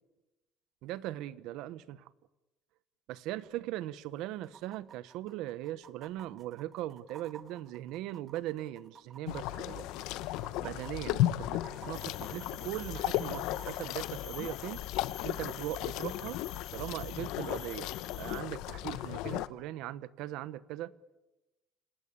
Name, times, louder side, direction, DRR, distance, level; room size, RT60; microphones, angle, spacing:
voice 1, 0.8-2.1 3.1-9.9 10.6-11.5 11.8-14.8 15.2-16.4 16.7-20.9, right 14 dB, 75° right, 16 dB, 1.0 m, -39 dB
sound 1, 4.4-14.7 16.4-16.5, right 6 dB, 30° right, 2.1 m, -55 dB
sound 2, 9.3-19.5, left 14 dB, 80° left, 0.9 m, -35 dB
sound 3, 11.9-18.4, left 12 dB, 55° left, 1.3 m, -48 dB
27.0 x 19.0 x 8.6 m, 1.0 s
cardioid pair, 165°, 0 cm